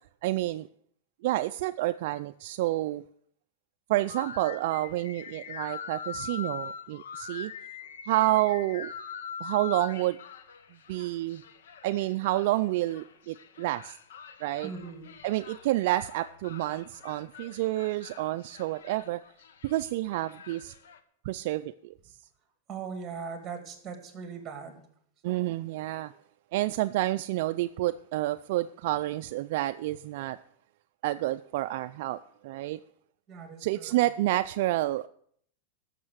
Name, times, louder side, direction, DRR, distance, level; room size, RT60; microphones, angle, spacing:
voice 1, 0.2-0.7 1.2-3.0 3.9-7.5 8.1-8.9 9.4-10.2 10.9-11.4 11.8-14.0 14.4-14.7 15.2-19.2 19.6-20.7 21.3-21.9 25.2-26.1 26.5-30.4 31.0-32.8 33.6-35.1, right 16 dB, 55° right, 10 dB, 0.4 m, -29 dB
sound 1, 4.1-21.0, left 7 dB, 85° left, 1.1 m, -43 dB
voice 2, 14.6-15.1 22.7-24.8 25.3-25.5 33.3-34.0, right 5 dB, 20° right, 7 dB, 2.5 m, -40 dB
12.0 x 6.7 x 8.0 m, 0.62 s
supercardioid pair, 150°, 0 cm